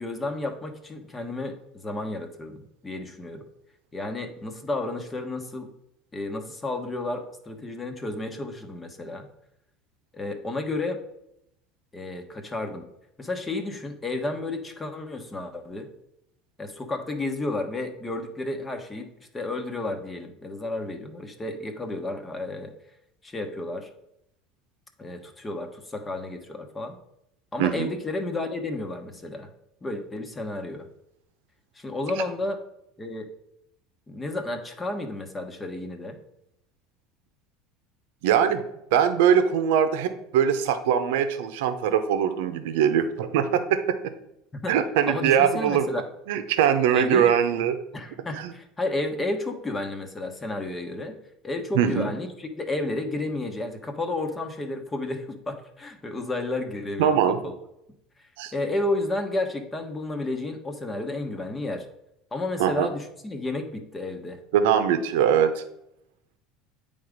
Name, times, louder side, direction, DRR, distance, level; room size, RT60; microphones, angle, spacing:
voice 1, 0.0-3.4 3.9-5.7 6.1-9.3 10.1-11.0 11.9-12.9 13.2-15.9 16.6-22.7 23.2-23.9 25.0-27.0 27.5-29.5 29.8-30.8 31.7-32.6 33.0-33.3 34.1-36.2 44.6-44.8 45.1-46.0 46.9-47.3 47.9-51.2 51.4-57.2 57.4-57.5 58.5-61.9 62.3-64.4, left 2 dB, 20° left, 5 dB, 1.2 m, -32 dB
voice 2, 38.2-43.8 44.7-45.9 46.3-47.8 48.4-48.5 51.8-52.1 57.0-57.4 58.4-58.5 62.6-62.9 64.5-65.5, right 8 dB, 80° right, 9 dB, 0.8 m, -22 dB
8.7 x 3.7 x 5.2 m, 0.79 s
supercardioid pair, 105°, 0 cm